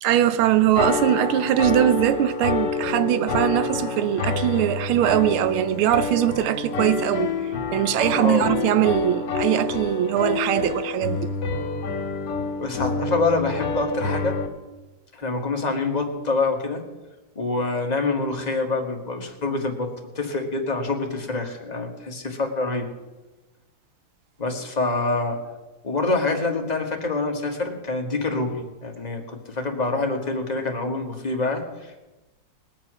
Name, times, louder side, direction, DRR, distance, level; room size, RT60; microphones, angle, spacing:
voice 1, 0.0-7.3 7.7-11.3, right 12 dB, 80° right, 1.4 m, -21 dB
sound 1, 0.7-14.5, left 4 dB, 90° left, 2.4 m, -27 dB
voice 2, 8.2-8.5 12.6-14.4 15.1-16.8 17.3-19.9 20.1-22.9 24.4-25.4 25.8-32.0, left 3 dB, 20° left, 1.3 m, -26 dB
20.5 x 7.4 x 6.2 m
omnidirectional pair, 2.4 m